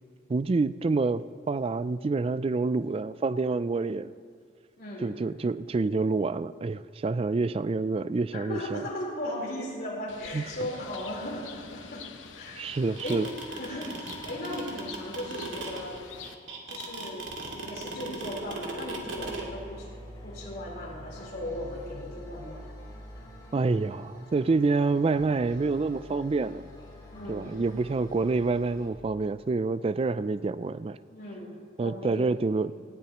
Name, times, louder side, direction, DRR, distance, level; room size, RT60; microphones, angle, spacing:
voice 1, 0.3-4.1 5.0-8.8 10.3-10.7 12.6-13.3 23.5-26.6 27.3-31.0 31.8-32.7, right 3 dB, 30° right, 15 dB, 0.3 m, -27 dB
voice 2, 4.8-5.2 8.3-12.7 13.0-16.0 16.7-19.9 20.2-22.7 27.1-27.5 31.1-32.3 32.8-32.9, left 1 dB, 55° left, -4 dB, 4.0 m, -37 dB
Bird, 10.1-16.3, left 6 dB, 85° left, 0.9 m, -46 dB
sound 1, 12.7-19.4, right 3 dB, 85° right, 2.2 m, -37 dB
sound 2, 17.3-28.9, equal, 20° left, 3.0 m, -47 dB
19.0 x 17.0 x 3.0 m, 2.1 s
head